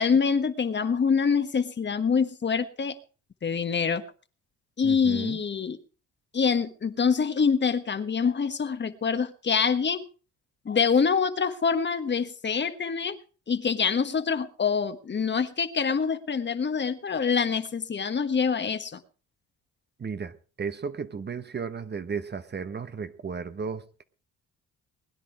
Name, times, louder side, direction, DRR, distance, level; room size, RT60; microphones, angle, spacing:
voice 1, 0.0-2.9 3.4-4.0 4.8-5.8 6.3-10.0 10.6-13.2 13.5-19.0, left 6 dB, 35° left, 1.4 m, -25 dB
voice 2, 4.8-5.4 20.0-24.0, right 5 dB, 35° right, 1.1 m, -34 dB
21.0 x 10.0 x 4.8 m
cardioid pair, 90°, 30 cm